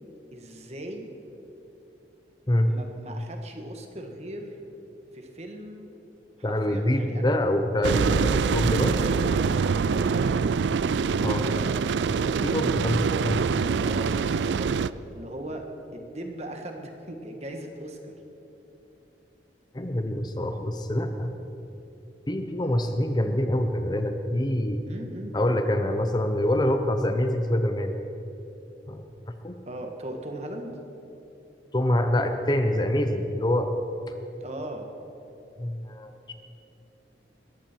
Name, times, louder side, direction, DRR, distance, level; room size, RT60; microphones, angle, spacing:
voice 1, 0.3-1.1 2.7-4.6 5.1-5.9 6.4-7.4 8.8-10.5 11.1-12.7 13.8-14.7 15.1-18.1 22.6-22.9 24.9-25.4 29.7-30.7 34.4-34.9, right 1 dB, 40° right, 3 dB, 1.7 m, -39 dB
voice 2, 6.4-8.9 11.2-11.4 12.4-13.5 19.7-21.3 22.3-24.8 25.3-28.0 28.9-29.1 29.4-29.6 31.7-33.7 34.1-34.2 35.6-36.3, left 1 dB, 25° left, 6 dB, 0.8 m, -25 dB
sound 1, 7.8-14.9, right 5 dB, 90° right, 0.4 m, -24 dB
21.0 x 15.0 x 4.6 m, 2.9 s
head